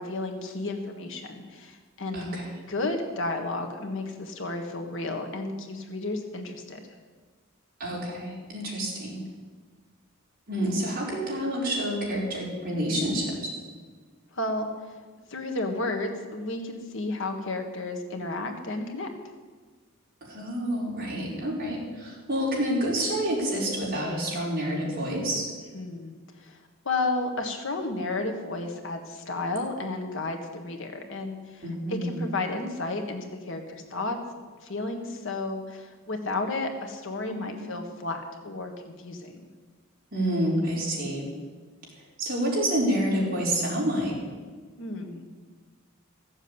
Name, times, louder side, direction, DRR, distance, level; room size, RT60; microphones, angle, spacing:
voice 1, 0.0-2.2 2.7-6.8 14.3-14.7 15.3-19.1 25.7-26.1 26.4-26.6 26.8-31.6 31.9-34.2 34.6-39.3 44.8-45.3, left 2 dB, 65° left, 4 dB, 1.7 m, -32 dB
voice 2, 2.1-2.5 7.8-9.2 10.5-13.5 20.2-25.5 31.6-32.1 37.3-37.6 40.1-41.3 42.0-44.2, equal, 45° right, -4 dB, 4.7 m, -28 dB
15.0 x 7.5 x 8.8 m, 1.4 s
head